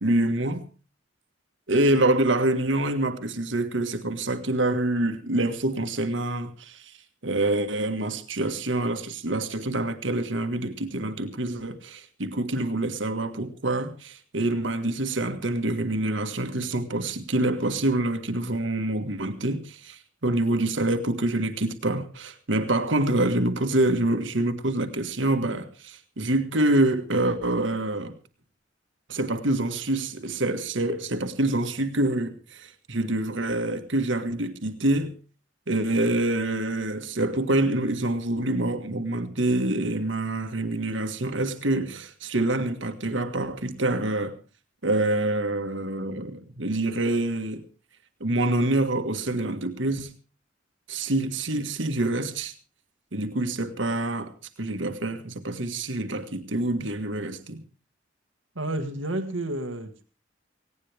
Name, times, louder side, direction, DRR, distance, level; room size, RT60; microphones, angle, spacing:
voice 1, 0.0-0.6 1.7-7.0 7.2-28.2 29.1-35.1 35.7-44.3 44.8-47.6 48.2-50.1 50.9-52.5 53.1-54.3 54.6-57.6, right 1 dB, 70° right, 1.7 m, -26 dB
voice 2, 58.5-60.0, right 1 dB, 85° right, 1.7 m, -30 dB
18.5 x 17.5 x 3.5 m
head